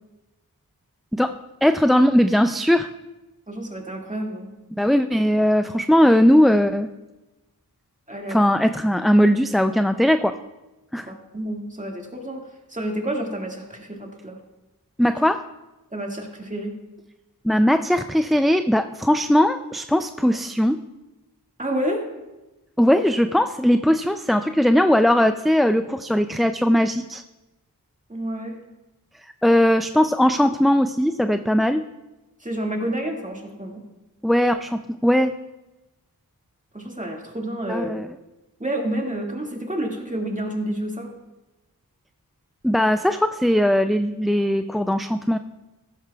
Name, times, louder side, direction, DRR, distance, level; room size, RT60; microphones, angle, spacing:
voice 1, 1.6-2.9 4.8-6.9 8.3-10.3 10.9-11.1 15.0-15.4 17.4-20.8 22.8-27.2 29.4-31.8 34.2-35.3 37.7-38.1 42.6-45.4, equal, ahead, 8 dB, 0.3 m, -19 dB
voice 2, 3.5-4.5 8.1-8.4 11.0-12.4 12.7-14.4 15.9-16.7 21.6-22.1 28.1-28.6 32.4-33.8 36.7-37.9 38.6-41.1, right 1 dB, 20° right, 0 dB, 2.0 m, -29 dB
15.0 x 12.5 x 2.3 m, 1.0 s
wide cardioid pair, 50°, 37 cm